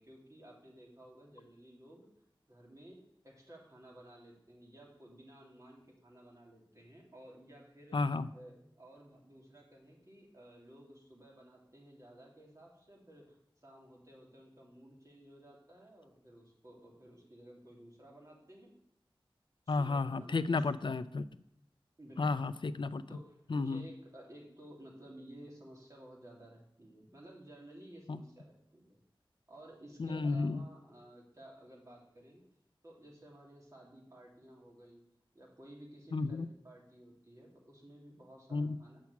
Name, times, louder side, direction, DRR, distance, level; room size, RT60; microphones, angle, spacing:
voice 1, 0.0-2.1 2.5-3.0 3.2-18.7 19.7-20.9 22.0-22.2 23.1-29.0 29.5-32.4 32.8-35.0 35.3-39.0, right 1 dB, 35° right, -2 dB, 2.7 m, -55 dB
voice 2, 7.9-8.3 19.7-21.2 22.2-23.0 23.5-23.8 28.1-28.2 30.0-30.6 36.1-36.5 38.5-38.8, left 3 dB, 60° left, 14 dB, 0.4 m, -32 dB
7.4 x 5.9 x 7.0 m, 0.78 s
wide cardioid pair, 55°, 9 cm